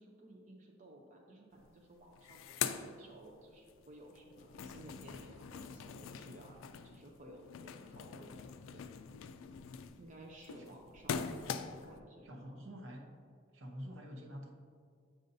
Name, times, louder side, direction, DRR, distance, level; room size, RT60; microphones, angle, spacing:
voice 1, 0.0-6.6 6.8-8.8 10.0-12.6, right 1 dB, 40° right, 0 dB, 0.5 m, -56 dB
sound 1, 1.6-1.7 2.0-3.7 4.1-12.0, left 7 dB, 80° left, 0.3 m, -43 dB
voice 2, 12.2-13.1 13.5-14.5, equal, 75° right, 2 dB, 0.8 m, -48 dB
7.3 x 5.4 x 2.6 m, 2.2 s
head